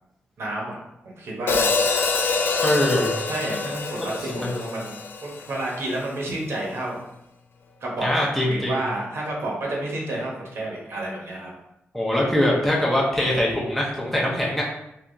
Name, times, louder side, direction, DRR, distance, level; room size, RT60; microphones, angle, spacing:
voice 1, 0.4-0.8 1.0-1.7 3.3-7.0 7.8-11.5, right 1 dB, 70° right, -3 dB, 1.0 m, -30 dB
Hi-hat, 1.5-5.8, left 4 dB, 55° left, 0.3 m, -25 dB
voice 2, 2.6-3.1 4.0-4.5 8.0-8.8 11.9-14.6, left 1 dB, 5° left, -4 dB, 0.6 m, -23 dB
3.3 x 2.8 x 2.6 m, 0.86 s
wide cardioid pair, 145°, 4 cm